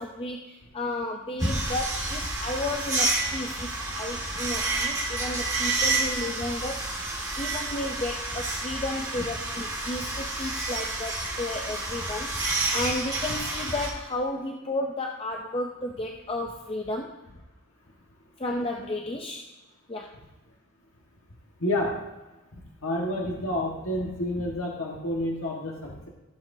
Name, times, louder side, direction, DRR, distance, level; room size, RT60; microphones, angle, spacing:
voice 1, 0.0-17.2 18.4-19.4 19.9-20.1, left 2 dB, 25° left, 1 dB, 0.5 m, -33 dB
sound 1, 1.4-13.9, right 2 dB, 15° right, 1.8 m, -29 dB
voice 2, 21.6-21.9 22.8-26.1, left 1 dB, 70° left, -2 dB, 1.5 m, -29 dB
14.5 x 7.5 x 2.7 m, 1.1 s
head